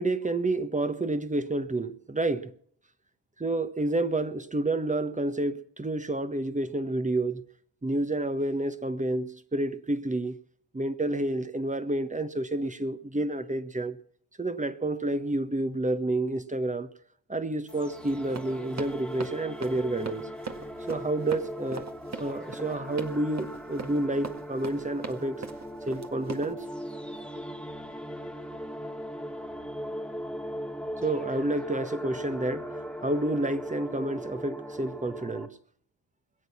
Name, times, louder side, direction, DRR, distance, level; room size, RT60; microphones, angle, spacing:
voice 1, 0.0-2.5 3.4-7.5 7.8-10.4 10.7-14.0 14.4-16.9 17.3-20.3 20.9-21.9 22.2-25.4 25.9-26.6 31.0-32.6 33.0-35.5, right 2 dB, 15° right, 1.3 m, -29 dB
sound 1, 17.7-35.5, equal, ahead, 1.4 m, -39 dB
Run, 18.0-26.5, right 4 dB, 35° right, 1.8 m, -40 dB
21.5 x 8.2 x 6.1 m
hypercardioid pair, 45°, 46 cm